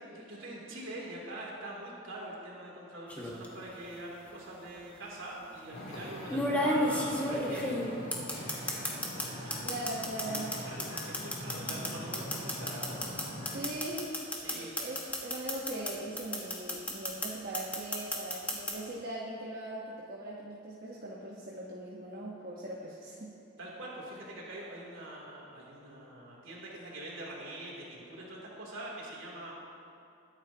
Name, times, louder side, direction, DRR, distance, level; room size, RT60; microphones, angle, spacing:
voice 1, 0.1-7.8 9.3-9.6 10.7-12.8 13.6-13.9 14.4-14.7 23.6-29.5, right 1 dB, 75° right, -4 dB, 3.1 m, -44 dB
sound 1, 3.1-3.5 4.7-4.8 6.3-9.3 9.5-15.9 16.2-17.3 17.5-18.7, left 1 dB, 10° left, 1.7 m, -31 dB
Wind / Ocean, 5.7-13.6, equal, 80° left, 3.1 m, -42 dB
voice 2, 9.6-10.6 11.5-11.8 13.5-14.2 14.4-23.3, right 1 dB, 50° right, -4 dB, 1.3 m, -40 dB
21.5 x 9.7 x 2.9 m, 2.7 s
head